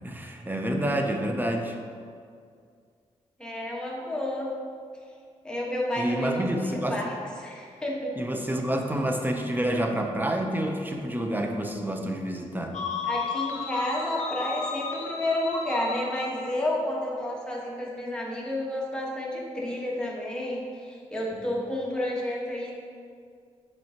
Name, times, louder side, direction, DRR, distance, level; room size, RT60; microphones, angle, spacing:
voice 1, 0.0-1.8 6.0-7.0 8.2-12.8, right 1 dB, 15° right, 3 dB, 0.7 m, -28 dB
voice 2, 3.4-4.5 5.4-7.1 7.4-8.1 13.1-22.7, left 1 dB, 5° left, -4 dB, 1.4 m, -30 dB
sound 1, 12.7-16.5, left 6 dB, 75° left, 0.6 m, -34 dB
7.5 x 4.6 x 2.9 m, 2.2 s
cardioid pair, 75°, 12 cm